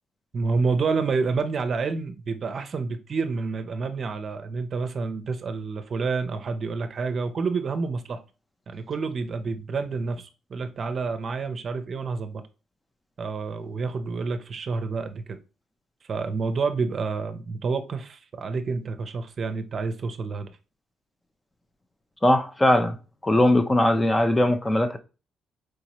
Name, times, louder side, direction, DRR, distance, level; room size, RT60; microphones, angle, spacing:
voice 1, 0.3-8.2 8.7-12.4 13.2-15.4 16.1-20.6, right 4 dB, 50° right, 0.6 m, -28 dB
voice 2, 22.2-23.0 23.2-25.0, left 1 dB, 15° left, 0.6 m, -20 dB
4.7 x 2.7 x 3.0 m
cardioid pair, 90°, 0 cm